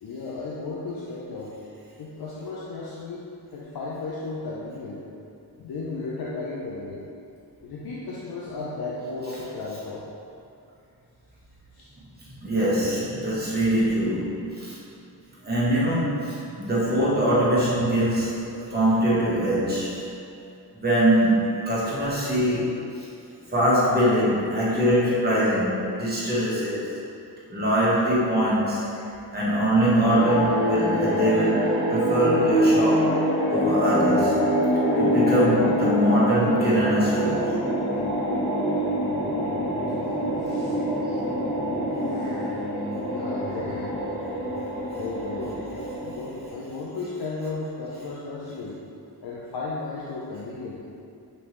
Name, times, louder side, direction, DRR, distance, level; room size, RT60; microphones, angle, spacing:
voice 1, 0.0-1.6 2.0-5.1 5.6-7.0 7.6-10.1 11.7-11.9 29.2-29.3 39.7-39.8 40.4-40.8 42.1-42.4 43.0-44.0 44.9-48.8 49.2-50.8, left 3 dB, 65° left, -5 dB, 0.6 m, -35 dB
voice 2, 12.4-14.8 15.4-20.0 20.7-23.1 23.5-26.9 27.5-29.0 29.3-33.2 33.5-34.4 35.0-37.5 42.1-42.5, right 1 dB, 25° right, -8 dB, 1.3 m, -23 dB
sound 1, 29.9-46.4, equal, 30° left, 1.4 m, -25 dB
5.2 x 2.7 x 3.1 m, 2.6 s
cardioid pair, 80°, 40 cm